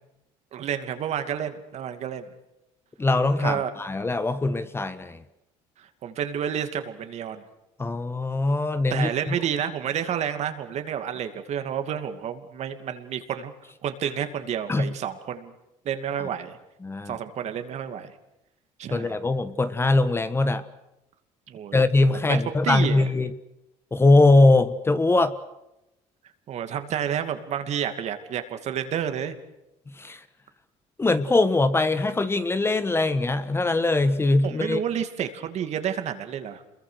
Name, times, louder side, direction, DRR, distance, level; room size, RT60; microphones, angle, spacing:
voice 1, 0.5-2.3 3.4-3.7 5.8-7.4 8.9-13.5 13.8-15.5 15.8-16.6 17.1-18.1 18.8-19.1 21.5-21.8 22.1-23.1 26.5-29.4 34.4-36.6, right 9 dB, 55° right, 8 dB, 2.6 m, -30 dB
voice 2, 3.0-5.2 7.8-9.3 14.7-14.9 16.8-17.2 18.9-20.6 21.7-23.3 23.9-25.4 30.0-30.2 31.0-34.8, left 2 dB, 20° left, 12 dB, 1.4 m, -21 dB
28.0 x 22.5 x 6.5 m, 0.89 s
cardioid pair, 105°, 14 cm